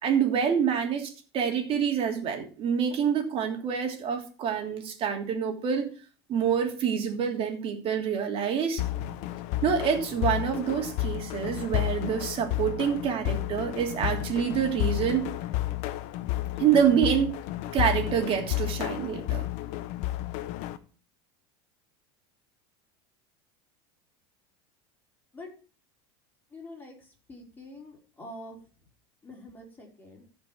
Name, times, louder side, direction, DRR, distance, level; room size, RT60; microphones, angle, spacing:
voice 1, 0.0-5.9 6.3-9.2 9.6-15.4 16.6-17.4 17.7-19.5, right 7 dB, 40° right, 3 dB, 3.0 m, -27 dB
sound 1, 8.8-20.8, left 15 dB, 60° left, 1.0 m, -31 dB
voice 2, 26.5-28.6 29.2-30.3, left 1 dB, 15° left, -1 dB, 5.0 m, -45 dB
14.5 x 5.4 x 5.9 m, 0.38 s
supercardioid pair, 120°, 14 cm